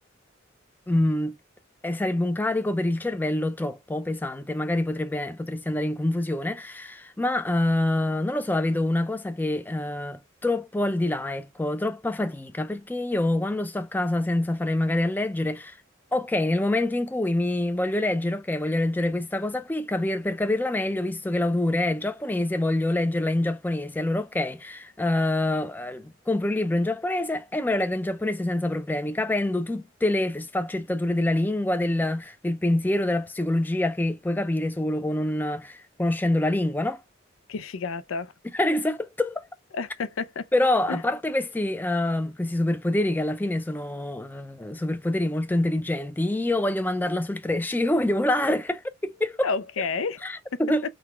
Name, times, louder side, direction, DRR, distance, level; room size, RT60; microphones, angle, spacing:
voice 1, 0.9-1.4 1.8-15.8 16.1-37.0 38.5-39.5 40.5-49.5 50.2-50.8, left 1 dB, 10° left, 0.4 m, -26 dB
voice 2, 37.5-38.3 39.7-40.5 40.9-41.0 49.4-50.3, left 4 dB, 80° left, 0.5 m, -30 dB
3.9 x 2.2 x 4.3 m
head